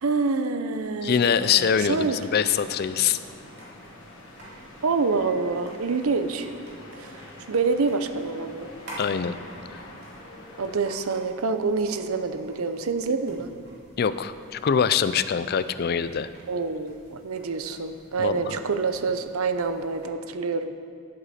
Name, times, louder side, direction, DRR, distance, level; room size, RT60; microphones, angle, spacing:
voice 1, 0.0-2.4 4.8-6.5 7.0-8.7 10.6-13.5 16.5-20.7, right 4 dB, 80° right, 9 dB, 0.7 m, -27 dB
sound 1, 0.7-20.1, right 1 dB, 50° right, 2.8 m, -49 dB
voice 2, 1.0-2.1 2.3-3.2 9.0-9.4 14.0-16.3 18.2-18.6, left 7 dB, 45° left, 13 dB, 0.4 m, -23 dB
sound 2, 1.3-10.8, left 1 dB, 60° left, 1.7 m, -45 dB
14.5 x 7.9 x 4.2 m, 2.4 s
head